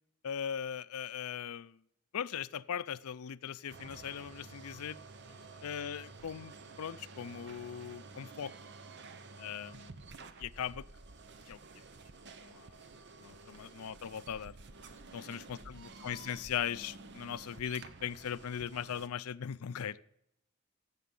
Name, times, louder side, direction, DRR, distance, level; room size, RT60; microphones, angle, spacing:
voice 1, 0.2-1.8 2.1-5.0 5.6-8.5 9.4-9.9 10.4-10.8 11.5-11.6 12.4-12.7 13.2-14.5 15.1-20.0, left 8 dB, 75° left, 16 dB, 0.5 m, -39 dB
sound 1, 3.7-19.1, right 3 dB, 55° right, 0.9 m, -51 dB
voice 2, 5.3-5.6 13.5-13.8 15.2-15.9 16.5-16.6, left 3 dB, 45° left, 1 dB, 1.9 m, -66 dB
16.5 x 7.5 x 5.4 m, 0.79 s
head